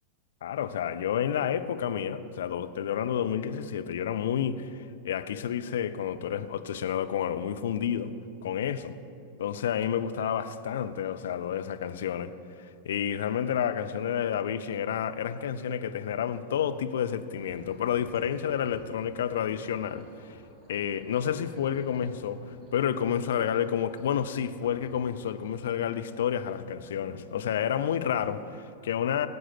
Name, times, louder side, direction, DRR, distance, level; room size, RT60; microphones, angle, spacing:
voice 1, 0.4-8.1 8.4-8.9 9.4-12.3 12.8-20.4 20.7-29.3, left 9 dB, 60° left, 0.5 m, -30 dB
sound 1, 13.9-28.3, equal, 90° left, 1.7 m, -55 dB
sound 2, 17.3-26.6, equal, 15° right, 3.8 m, -55 dB
17.5 x 7.8 x 6.0 m
figure-of-eight pair, 90°, 0 cm